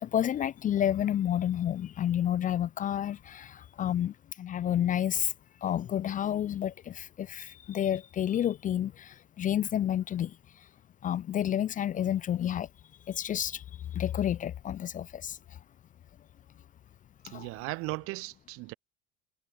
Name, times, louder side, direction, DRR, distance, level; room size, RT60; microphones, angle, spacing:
voice 1, 0.0-5.3 5.6-10.7 11.0-12.7 13.1-15.6 17.3-17.5, left 10 dB, 25° left, 0.4 m, -30 dB
voice 2, 17.2-18.7, right 24 dB, 45° right, 0.5 m, -37 dB
figure-of-eight pair, 65°, 31 cm